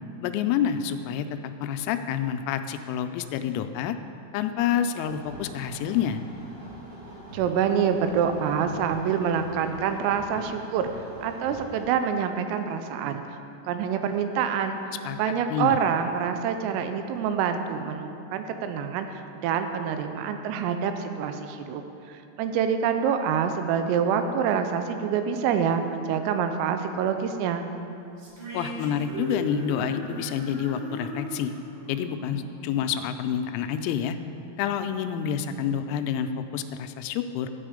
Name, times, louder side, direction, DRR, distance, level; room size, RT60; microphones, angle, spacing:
voice 1, 0.2-1.3 1.6-4.0 4.3-6.2 15.0-15.2 15.5-15.8 28.5-31.5 31.9-34.2 34.6-37.5, left 9 dB, 85° left, 8 dB, 3.3 m, -28 dB
sound 1, 5.0-11.9, right 1 dB, 35° right, 3.3 m, -44 dB
voice 2, 7.3-10.9 11.2-13.4 13.7-14.8 15.2-21.8 22.1-27.7, right 7 dB, 85° right, 7 dB, 3.3 m, -26 dB
sound 2, 28.2-33.5, right 1 dB, 50° right, 2.6 m, -37 dB
13.0 x 8.9 x 5.0 m, 2.7 s
omnidirectional pair, 6.0 m